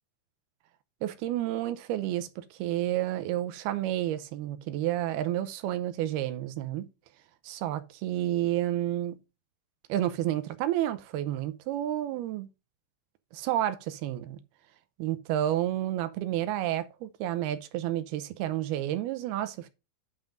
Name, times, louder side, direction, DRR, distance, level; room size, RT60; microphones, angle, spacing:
voice 1, 1.0-6.9 7.4-9.2 9.9-12.5 13.3-14.4 15.0-19.7, right 13 dB, 80° right, 2.6 m, -30 dB
9.2 x 5.4 x 3.8 m
omnidirectional pair, 4.7 m